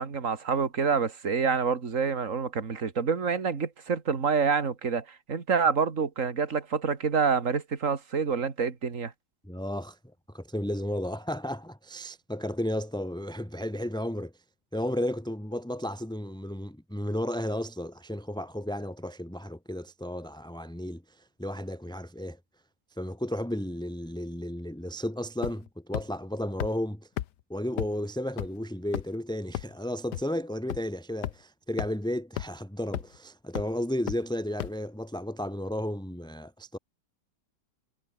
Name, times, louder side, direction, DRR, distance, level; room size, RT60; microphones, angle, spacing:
voice 1, 0.0-9.1, right 5 dB, 45° right, 2.5 m, -27 dB
voice 2, 9.4-14.4 14.7-22.4 22.9-27.1 27.5-36.8, left 1 dB, ahead, 2.5 m, -33 dB
sound 1, 25.4-25.7 25.9-26.0 26.6-26.7 27.2-27.3 27.8-27.9 28.4-28.5 28.9-29.2 29.5-29.6 30.1-30.2 30.7-30.8 31.2-31.3 31.8-31.9 32.4-32.5 32.9-33.2 33.5-33.6 34.1-34.2 34.6-34.7, left 13 dB, 75° left, 1.3 m, -31 dB
omnidirectional pair, 1.9 m